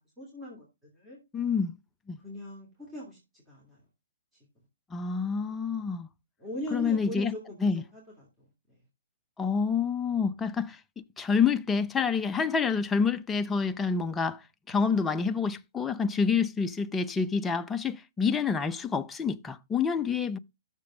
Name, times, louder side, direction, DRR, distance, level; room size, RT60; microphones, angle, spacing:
voice 1, 0.2-0.6 0.9-1.2 2.2-3.2 3.5-3.8 6.4-7.6 7.9-8.3 14.7-15.0, equal, 10° right, 2.9 m, -40 dB
voice 2, 1.3-1.7 2.1-2.2 4.9-6.1 6.7-7.3 7.6-7.8 9.4-10.8 11.2-20.4, left 5 dB, 10° left, 0.5 m, -28 dB
6.8 x 5.0 x 6.3 m
hypercardioid pair, 135°, 0 cm